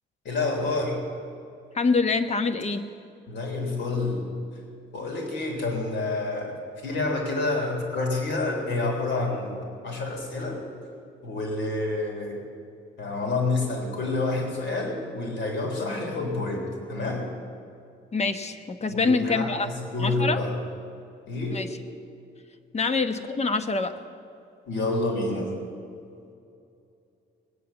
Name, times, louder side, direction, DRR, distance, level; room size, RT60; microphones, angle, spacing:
voice 1, 0.2-1.0 3.3-4.3 4.9-10.6 11.2-12.4 13.0-17.3 18.9-20.5 21.3-21.7 22.8-22.9 24.7-25.5, left 2 dB, 65° left, 1 dB, 3.6 m, -28 dB
voice 2, 1.7-2.8 18.1-19.7 20.0-20.4 21.5-21.7 22.7-23.9, left 4 dB, 35° left, 8 dB, 1.1 m, -25 dB
21.5 x 8.5 x 7.0 m, 2.5 s
cardioid pair, 90°, 20 cm